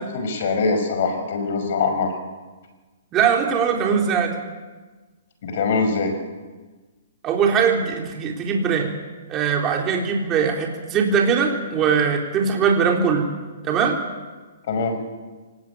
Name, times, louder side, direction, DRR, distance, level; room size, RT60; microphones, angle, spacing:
voice 1, 0.0-2.1 5.4-6.1 14.7-15.0, left 4 dB, 55° left, 5 dB, 6.0 m, -23 dB
voice 2, 3.1-4.4 7.2-8.9 9.3-13.3 13.6-14.0, right 6 dB, 20° right, 1 dB, 3.8 m, -21 dB
24.5 x 19.0 x 8.7 m, 1.3 s
hypercardioid pair, 150°, 0 cm